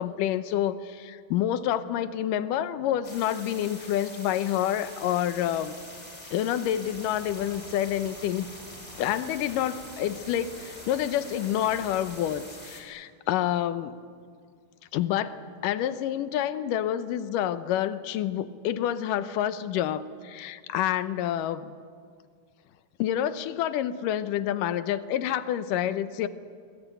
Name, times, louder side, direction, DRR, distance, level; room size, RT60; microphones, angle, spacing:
voice 1, 0.0-5.7 6.3-8.5 9.0-13.9 14.9-21.7 23.0-26.3, left 11 dB, 75° left, 13 dB, 2.3 m, -28 dB
sound 1, 3.0-12.8, left 1 dB, 10° left, 4.1 m, -45 dB
sound 2, 6.8-12.4, equal, 15° right, 2.8 m, -51 dB
25.0 x 20.5 x 9.3 m, 2.1 s
omnidirectional pair, 4.2 m